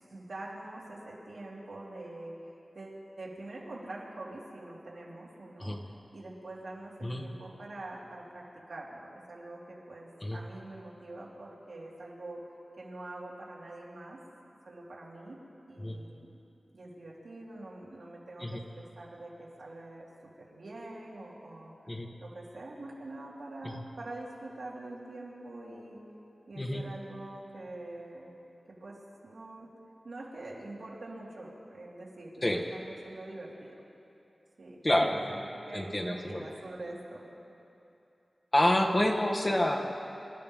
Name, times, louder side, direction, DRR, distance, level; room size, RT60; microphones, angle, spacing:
voice 1, 0.1-2.4 2.7-5.8 6.1-12.5 12.8-14.2 14.6-15.4 15.7-16.3 16.7-20.1 20.4-21.7 22.2-26.0 26.5-28.3 28.7-29.7 30.0-33.8 34.6-34.8 35.1-37.3, right 2 dB, 75° right, -5 dB, 3.1 m, -45 dB
voice 2, 34.8-35.2 35.7-36.4 38.5-39.8, left 1 dB, 25° left, 2 dB, 1.3 m, -27 dB
27.0 x 12.5 x 3.6 m, 2.8 s
wide cardioid pair, 65°, 0 cm